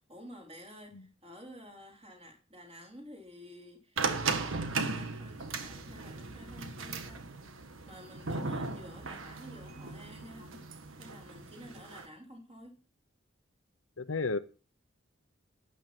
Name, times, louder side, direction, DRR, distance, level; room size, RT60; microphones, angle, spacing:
voice 1, 0.0-10.6 10.9-12.8, equal, 30° right, 3.9 m, -51 dB
sound 1, 4.0-12.1, right 4 dB, 75° right, 1.4 m, -37 dB
voice 2, 14.0-14.4, left 3 dB, 80° left, 0.9 m, -32 dB
12.0 x 8.9 x 6.1 m
head